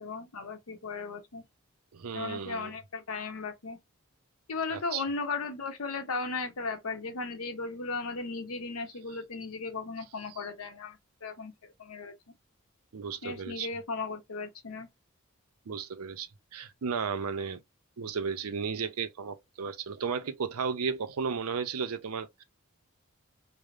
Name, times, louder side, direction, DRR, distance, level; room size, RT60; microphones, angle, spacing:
voice 1, 0.0-1.4 2.1-3.8 4.5-12.1 13.2-14.9, left 4 dB, 75° left, 0.7 m, -36 dB
voice 2, 1.9-2.7 4.7-5.0 12.9-13.7 15.7-17.6 18.0-22.4, right 6 dB, 80° right, 0.5 m, -34 dB
3.3 x 2.0 x 2.4 m
head